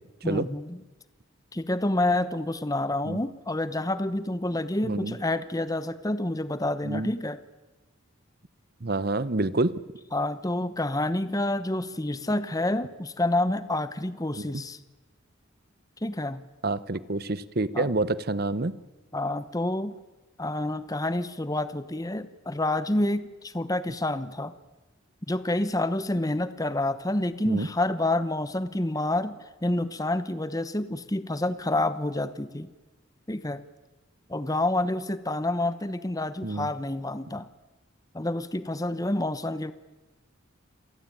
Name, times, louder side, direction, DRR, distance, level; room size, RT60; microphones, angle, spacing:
voice 1, 0.2-0.8 1.5-7.4 10.1-14.8 16.0-16.4 17.7-17.9 19.1-19.9 20.4-24.5 25.3-32.7 33.3-33.6 34.3-37.5 38.1-39.7, left 1 dB, 15° left, 13 dB, 0.9 m, -28 dB
voice 2, 4.8-5.1 6.8-7.1 8.8-9.8 14.4-14.5 16.6-18.8 27.5-27.7 36.4-36.7, right 2 dB, 50° right, 17 dB, 0.9 m, -28 dB
28.0 x 17.0 x 9.2 m, 1.2 s
head